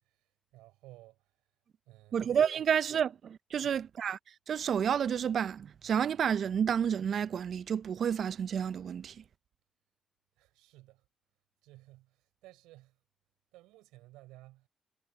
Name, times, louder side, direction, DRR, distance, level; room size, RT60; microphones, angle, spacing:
voice 1, 0.0-1.4 1.9-2.3 2.6-2.7 3.6-3.9 10.4-11.0 11.6-13.0 13.5-14.7, right 18 dB, 90° right, 4.7 m, -56 dB
voice 2, 2.1-4.2 4.5-9.1, right 8 dB, 65° right, 0.5 m, -30 dB
supercardioid pair, 45°, 0 cm